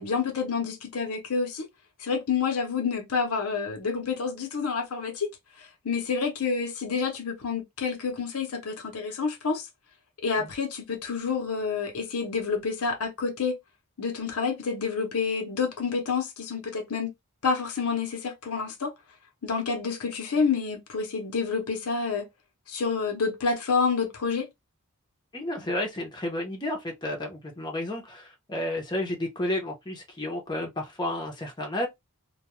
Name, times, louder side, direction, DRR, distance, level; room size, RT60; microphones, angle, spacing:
voice 1, 0.0-1.7 2.0-5.3 5.8-9.7 10.2-13.6 14.0-17.1 17.4-18.9 19.4-22.3 22.7-24.5, left 5 dB, 75° left, 0.8 m, -28 dB
voice 2, 25.3-31.9, left 1 dB, 20° left, 0.7 m, -31 dB
2.3 x 2.2 x 2.9 m
head